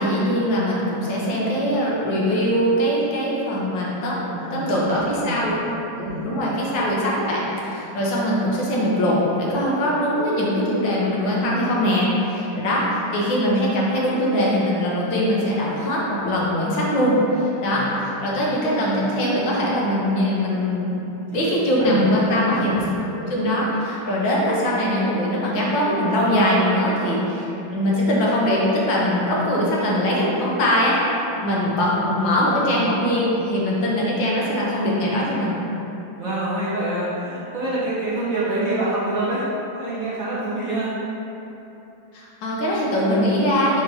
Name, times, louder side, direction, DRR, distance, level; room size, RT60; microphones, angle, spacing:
voice 1, 0.0-5.7 6.0-20.9 21.3-35.6 42.1-43.8, equal, 70° left, -5 dB, 1.7 m, -22 dB
voice 2, 4.3-5.4 6.0-6.3 17.7-18.1 21.8-22.8 36.2-39.5 39.8-40.9, right 1 dB, 45° right, -10 dB, 1.4 m, -27 dB
5.7 x 3.1 x 5.4 m, 3.0 s
omnidirectional pair, 2.2 m